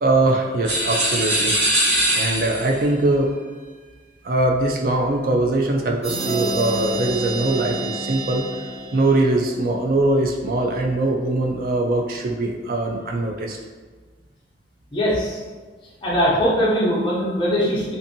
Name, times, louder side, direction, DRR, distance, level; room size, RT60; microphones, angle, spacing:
voice 1, 0.0-1.5 2.1-3.3 4.2-8.5 8.9-13.6, right 2 dB, 50° right, 1 dB, 0.3 m, -21 dB
sound 1, 0.6-2.8, right 1 dB, 80° right, 1.3 m, -21 dB
sound 2, 6.0-9.6, right 2 dB, 35° right, 1.2 m, -29 dB
voice 2, 14.9-15.4 16.0-17.9, equal, 25° left, -7 dB, 0.6 m, -21 dB
2.6 x 2.6 x 2.6 m, 1.4 s
head